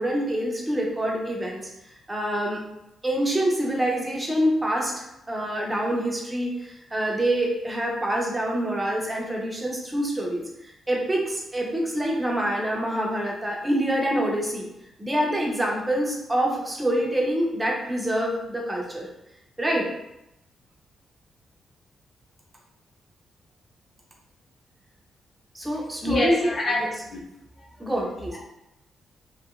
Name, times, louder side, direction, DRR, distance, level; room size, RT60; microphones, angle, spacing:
voice 1, 0.0-1.7 2.1-2.6 3.0-14.7 15.0-19.1 19.6-19.9 25.5-27.0 27.8-28.4, right 1 dB, 10° right, -1 dB, 0.5 m, -26 dB
voice 2, 26.0-26.8 27.1-27.2, left 1 dB, 35° left, -3 dB, 0.7 m, -24 dB
2.8 x 2.7 x 2.4 m, 0.86 s
wide cardioid pair, 175°, 0 cm